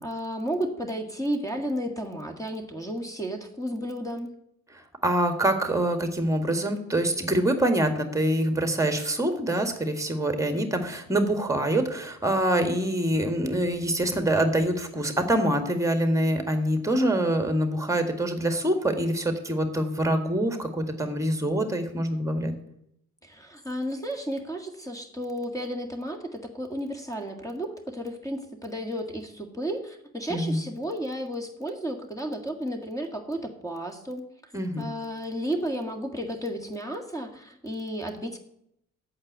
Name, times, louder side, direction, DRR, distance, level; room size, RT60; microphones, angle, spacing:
voice 1, 0.0-4.3 23.2-34.2 34.8-38.4, equal, 10° left, 4 dB, 1.8 m, -33 dB
voice 2, 5.0-22.5 30.3-30.6 34.5-34.8, right 1 dB, 5° right, 7 dB, 1.9 m, -25 dB
8.7 x 7.3 x 8.0 m, 0.77 s
figure-of-eight pair, 50°, 42 cm